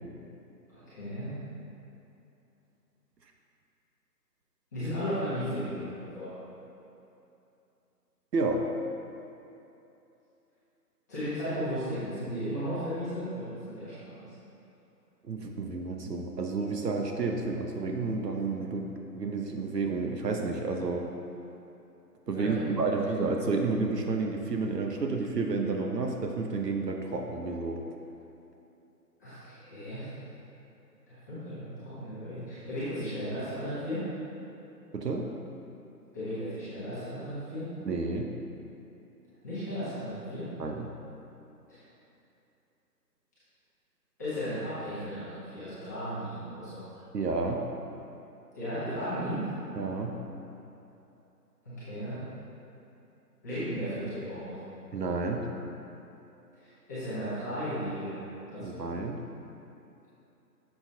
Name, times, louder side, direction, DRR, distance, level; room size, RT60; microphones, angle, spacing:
voice 1, 0.7-1.3 4.7-6.3 11.1-14.3 22.3-22.6 29.2-30.1 31.1-34.0 36.1-37.6 39.4-40.5 41.7-41.8 44.2-46.8 48.5-49.5 51.6-52.2 53.4-54.6 56.6-58.1 58.5-58.9, equal, 10° left, -15 dB, 1.1 m, -35 dB
voice 2, 8.3-8.6 15.3-21.0 22.3-27.8 34.9-35.2 37.8-38.3 40.6-40.9 47.1-47.6 49.8-50.1 54.9-55.4 58.6-59.2, right 3 dB, 70° right, 2 dB, 0.9 m, -30 dB
7.6 x 7.0 x 2.8 m, 2.8 s
figure-of-eight pair, 165°, 50 cm